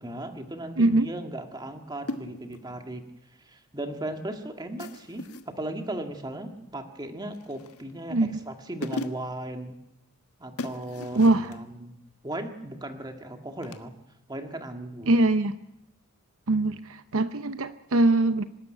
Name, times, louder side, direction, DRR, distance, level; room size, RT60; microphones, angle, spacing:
voice 1, 0.0-3.0 3.4-9.8 10.4-11.9 12.2-13.9 14.3-15.2, right 1 dB, 20° right, 5 dB, 1.9 m, -37 dB
sound 1, 2.1-2.7 4.8-5.5 7.3-7.9 8.5-8.6 8.8-9.4 10.6-11.6 13.6-13.8, left 2 dB, 80° left, 1.4 m, -37 dB
voice 2, 8.1-8.4 11.2-11.5 15.1-15.6 16.5-18.4, right 2 dB, 65° right, 11 dB, 0.8 m, -22 dB
25.5 x 12.5 x 10.0 m, 0.88 s
head